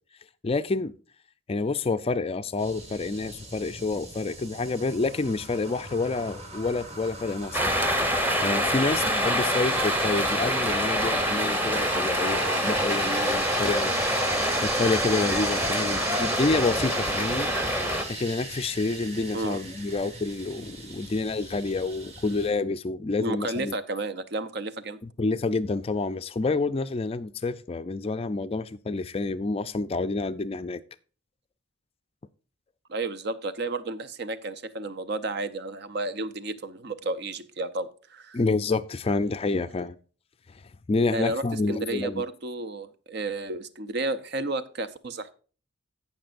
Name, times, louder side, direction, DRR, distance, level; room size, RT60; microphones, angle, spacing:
voice 1, 0.4-0.9 1.5-7.7 8.0-14.0 14.2-17.5 18.1-23.7 25.0-30.8 38.3-40.0 40.9-42.2, left 3 dB, 30° left, 0.4 m, -28 dB
sound 1, 2.6-22.5, right 2 dB, 30° right, 1.9 m, -37 dB
sound 2, 7.5-18.0, equal, 10° right, 1.0 m, -26 dB
voice 2, 23.2-25.0 32.9-38.4 41.1-45.3, right 2 dB, 55° right, 0.7 m, -32 dB
16.5 x 6.0 x 2.5 m
head